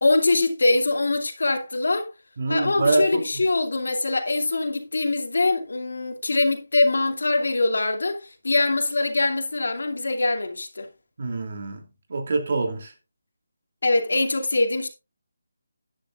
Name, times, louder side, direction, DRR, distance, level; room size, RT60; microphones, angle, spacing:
voice 1, 0.0-2.1 2.5-10.9 13.8-14.9, left 2 dB, 80° left, 2.5 m, -23 dB
voice 2, 2.4-3.4 11.2-12.9, right 2 dB, 50° right, 2.8 m, -25 dB
14.0 x 10.5 x 2.4 m
figure-of-eight pair, 170°, 0 cm